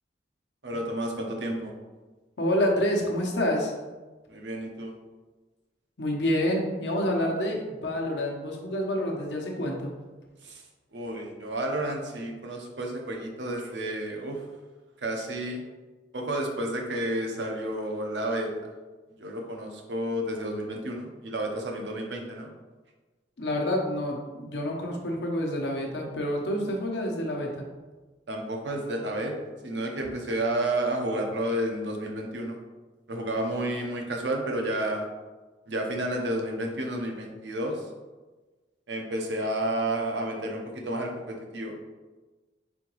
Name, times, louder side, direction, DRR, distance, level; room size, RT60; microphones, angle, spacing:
voice 1, 0.6-1.7 4.3-4.9 10.4-10.6 10.9-14.4 15.0-15.6 16.1-18.5 19.2-22.5 28.3-29.4 29.6-32.6 33.1-35.1 35.7-37.8 38.9-41.9, right 1 dB, 85° right, 1 dB, 0.8 m, -31 dB
voice 2, 2.4-3.7 6.0-9.9 23.4-27.6, left 1 dB, 75° left, 0 dB, 0.9 m, -28 dB
4.3 x 3.9 x 3.0 m, 1.2 s
head